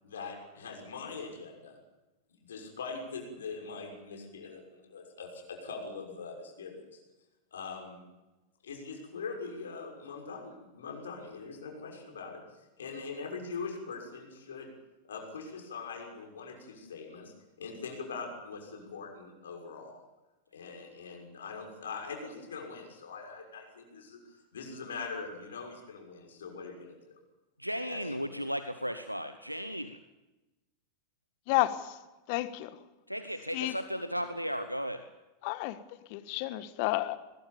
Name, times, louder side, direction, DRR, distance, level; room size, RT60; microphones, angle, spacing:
voice 1, 0.0-1.8 2.4-7.0 7.5-8.0 8.6-12.4 12.8-14.7 15.1-20.0 20.5-24.2 24.5-27.2 27.9-28.3, left 4 dB, 65° left, 2 dB, 6.2 m, -42 dB
voice 2, 27.6-30.0 33.1-35.0, equal, 90° right, 11 dB, 1.0 m, -35 dB
voice 3, 31.5-32.0 32.3-32.8 33.5-33.8 35.4-35.8 36.1-37.2, left 17 dB, 45° left, 13 dB, 1.6 m, -31 dB
22.5 x 21.5 x 7.2 m, 1.1 s
figure-of-eight pair, 90°, 0 cm